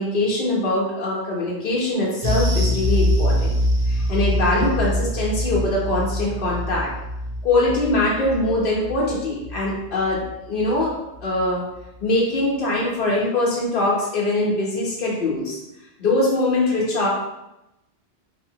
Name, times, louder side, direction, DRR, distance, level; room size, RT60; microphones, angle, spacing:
voice 1, 0.0-3.5 3.9-6.9 7.4-10.2 10.5-10.9 11.2-11.6 12.0-15.6 16.0-17.1, left 2 dB, 55° left, -6 dB, 0.9 m, -22 dB
sound 1, 2.2-10.9 11.2-11.4 11.8-11.9, equal, 40° right, 0.8 m, -24 dB
4.2 x 2.8 x 2.7 m, 0.92 s
omnidirectional pair, 1.1 m